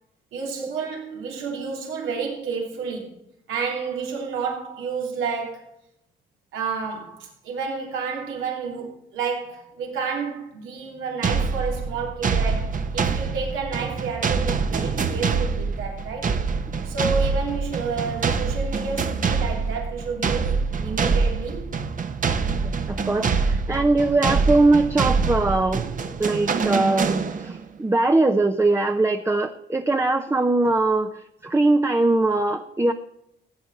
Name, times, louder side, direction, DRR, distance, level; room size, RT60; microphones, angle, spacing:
voice 1, 0.3-3.2 3.5-5.7 6.5-16.4 16.8-21.7 23.8-23.9, right 5 dB, 85° right, 3.2 m, -30 dB
sound 1, 11.2-27.7, right 5 dB, 40° right, 1.1 m, -25 dB
voice 2, 22.6-25.9 26.2-32.9, right 2 dB, 15° right, 0.7 m, -21 dB
15.5 x 8.8 x 4.2 m
cardioid pair, 90°, 20 cm